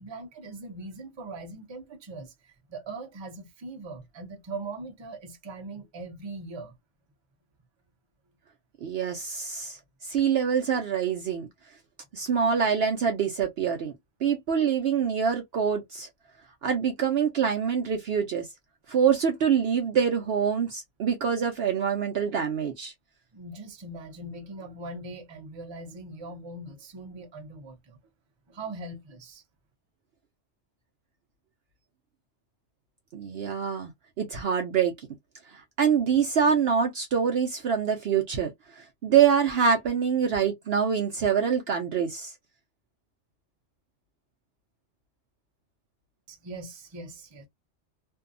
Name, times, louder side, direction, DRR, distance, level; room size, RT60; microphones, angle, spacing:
voice 1, 0.0-6.8 23.3-28.0 28.5-29.4 46.3-47.5, right 2 dB, 30° right, 0.6 m, -41 dB
voice 2, 8.8-11.5 12.1-13.9 14.2-16.1 16.6-18.5 18.9-22.9 33.1-33.9 34.2-35.1 35.5-42.3, right 7 dB, 60° right, 0.7 m, -25 dB
2.6 x 2.3 x 2.5 m
omnidirectional pair, 1.3 m